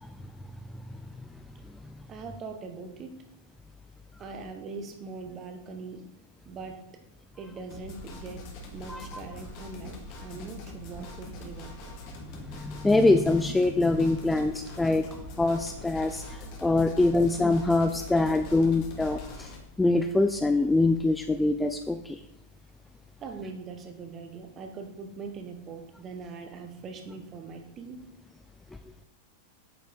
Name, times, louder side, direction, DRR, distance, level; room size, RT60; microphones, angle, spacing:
voice 1, 2.1-3.2 4.2-6.0 6.4-6.8 7.3-8.5 8.7-12.0 23.2-28.0, right 4 dB, 30° right, 4 dB, 1.1 m, -41 dB
sound 1, 7.7-19.6, left 2 dB, 45° left, 1.5 m, -43 dB
voice 2, 8.9-9.2 12.6-15.1 15.4-16.2 16.6-19.5 19.8-22.2, left 2 dB, 10° left, 7 dB, 0.4 m, -24 dB
8.7 x 5.0 x 3.5 m, 0.83 s
figure-of-eight pair, 95°, 0 cm